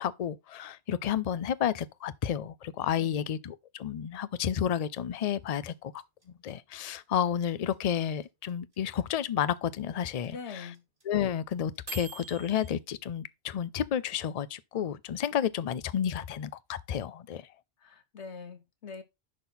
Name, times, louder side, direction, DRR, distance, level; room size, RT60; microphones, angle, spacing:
voice 1, 0.0-6.0 6.4-10.7 11.1-17.4, left 9 dB, 50° left, 0.5 m, -31 dB
voice 2, 3.0-3.3 10.3-10.8 17.8-19.0, left 5 dB, 90° left, 1.4 m, -43 dB
sound 1, 4.5-12.8, right 5 dB, 50° right, 2.7 m, -46 dB
11.0 x 4.2 x 4.0 m
omnidirectional pair, 1.1 m